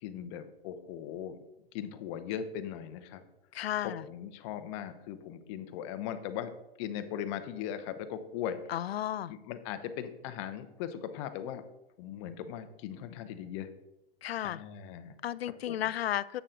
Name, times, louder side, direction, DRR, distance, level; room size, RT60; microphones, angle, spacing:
voice 1, 0.0-1.4 1.7-3.2 3.8-6.5 6.8-8.6 9.3-11.6 12.0-13.7 14.4-15.1 15.5-15.8, left 9 dB, 30° left, 9 dB, 0.7 m, -39 dB
voice 2, 3.5-4.0 8.7-9.3 14.2-14.6 15.2-16.4, left 12 dB, 85° left, 18 dB, 0.5 m, -33 dB
7.8 x 6.7 x 3.8 m, 0.91 s
hypercardioid pair, 140°, 30 cm